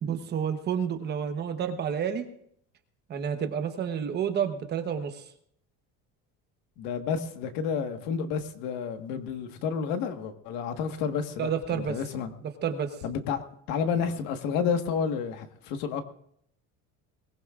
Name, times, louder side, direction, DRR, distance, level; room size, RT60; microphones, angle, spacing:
voice 1, 0.0-2.2 3.1-5.2 11.4-12.0 12.6-12.9, right 8 dB, 30° right, 1.0 m, -29 dB
voice 2, 6.8-12.3 13.0-13.4 13.7-16.0, left 6 dB, 90° left, 1.6 m, -30 dB
22.0 x 19.0 x 2.5 m
cardioid pair, 180°, 32 cm